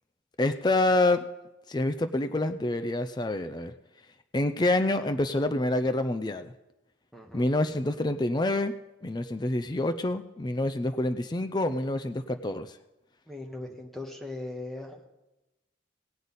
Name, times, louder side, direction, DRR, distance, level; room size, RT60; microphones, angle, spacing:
voice 1, 0.4-1.2 1.7-3.7 4.3-6.5 7.3-8.7 9.0-12.7, left 2 dB, 20° left, 9 dB, 0.4 m, -27 dB
voice 2, 7.1-7.5 13.3-15.1, left 2 dB, ahead, 1 dB, 1.3 m, -39 dB
18.5 x 8.0 x 4.1 m, 0.98 s
head